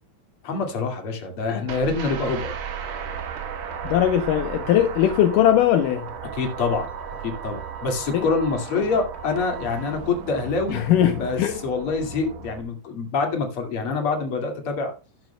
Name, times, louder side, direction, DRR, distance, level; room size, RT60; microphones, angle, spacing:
voice 1, 0.4-2.5 6.3-6.9 7.2-10.8 11.1-14.9, left 4 dB, 40° left, 2.6 m, -26 dB
sound 1, 1.7-12.6, right 7 dB, 75° right, 1.6 m, -36 dB
sound 2, 2.8-9.9, right 6 dB, 25° right, 1.4 m, -42 dB
voice 2, 3.8-6.0 8.1-8.3 10.7-11.6, left 11 dB, 80° left, 2.0 m, -20 dB
12.5 x 12.0 x 2.3 m
omnidirectional pair, 4.7 m